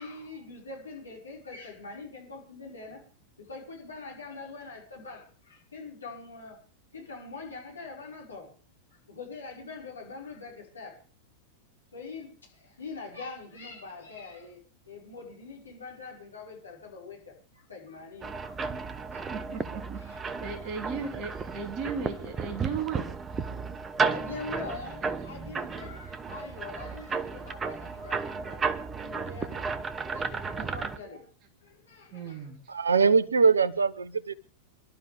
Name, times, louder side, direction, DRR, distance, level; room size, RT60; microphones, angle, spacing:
voice 1, 0.0-3.0 3.4-6.6 6.9-8.5 8.9-11.0 11.9-14.6 14.9-18.6 19.1-19.6 20.0-20.2 20.6-21.0 22.0-22.4 23.7-23.8 24.1-28.6 29.0-29.7 30.1-31.3 31.6-32.5, left 4 dB, 75° left, 5.5 m, -44 dB
sound 1, 18.2-31.0, right 5 dB, 20° right, 1.0 m, -33 dB
voice 2, 19.3-23.1 23.5-23.6 32.1-32.6, right 5 dB, 35° right, 2.8 m, -36 dB
voice 3, 32.7-34.3, right 5 dB, 75° right, 1.1 m, -22 dB
28.0 x 12.0 x 3.5 m
figure-of-eight pair, 90°, 0 cm